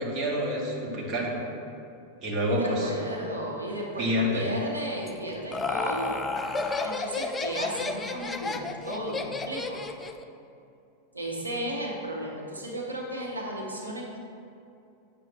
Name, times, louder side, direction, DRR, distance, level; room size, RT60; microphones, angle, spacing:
voice 1, 0.0-1.6 2.2-2.9 4.0-4.5, equal, 35° right, -3 dB, 1.5 m, -28 dB
voice 2, 2.6-6.3 6.8-9.9 11.1-14.2, right 1 dB, 85° right, -2 dB, 1.1 m, -34 dB
Laughter, 5.1-10.2, left 3 dB, 15° left, 0.4 m, -32 dB
8.4 x 6.3 x 3.1 m, 2.6 s
figure-of-eight pair, 90°, 0 cm